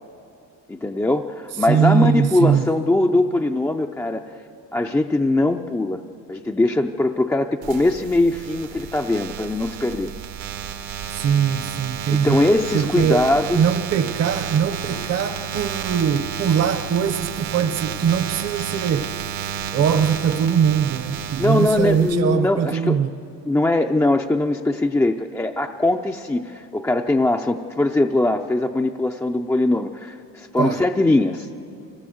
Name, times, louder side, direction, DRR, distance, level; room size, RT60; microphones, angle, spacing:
voice 1, 0.7-4.3 4.7-6.0 6.3-10.1 12.1-13.6 21.4-23.0 23.5-31.5, left 2 dB, 10° left, 3 dB, 0.4 m, -21 dB
voice 2, 1.6-2.7 11.1-12.5 12.7-19.2 19.7-23.2 30.6-30.8, right 7 dB, 45° right, 8 dB, 0.9 m, -21 dB
sound 1, 7.6-22.1, right 9 dB, 90° right, 1.9 m, -32 dB
25.0 x 17.0 x 7.7 m, 2.7 s
cardioid pair, 130°, 35 cm